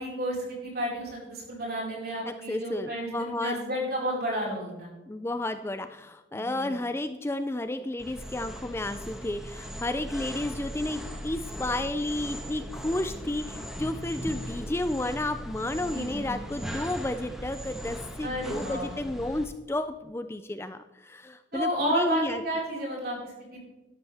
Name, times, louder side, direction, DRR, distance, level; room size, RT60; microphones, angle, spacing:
voice 1, 0.0-4.9 6.3-6.7 15.9-16.4 18.2-19.0 21.5-23.6, equal, 55° right, -4 dB, 4.7 m, -32 dB
voice 2, 2.2-3.6 5.1-22.4, left 1 dB, 15° left, 10 dB, 0.3 m, -32 dB
sound 1, 8.0-19.4, equal, ahead, 1.3 m, -39 dB
12.5 x 12.0 x 3.4 m, 1.0 s
head